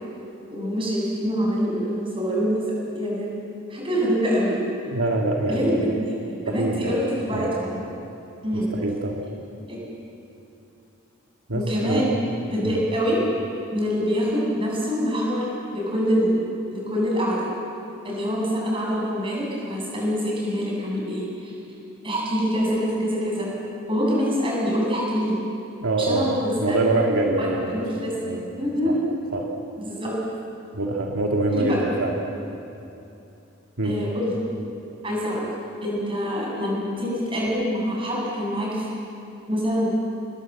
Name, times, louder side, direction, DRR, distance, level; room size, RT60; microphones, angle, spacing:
voice 1, 0.5-2.6 2.9-3.3 3.7-4.6 5.5-5.9 6.5-7.8 8.4-8.7 9.7-9.8 11.5-12.2 12.5-13.4 13.7-16.4 16.7-17.5 18.0-21.5 22.0-23.5 23.9-25.3 26.0-26.9 27.4-28.1 28.6-29.0 29.8-30.1 31.5-31.8 33.8-34.3 35.0-35.5 35.8-38.9 39.5-39.9, equal, 25° right, -4 dB, 7.6 m, -25 dB
voice 2, 4.9-6.0 6.5-7.0 7.3-7.6 8.5-9.3 11.5-12.2 12.6-12.9 25.8-28.0 28.2-28.5 28.9-29.0 29.3-29.5 30.7-32.2 33.8-34.1, right 2 dB, 75° right, 0 dB, 2.0 m, -25 dB
27.0 x 21.5 x 7.7 m, 2.8 s
head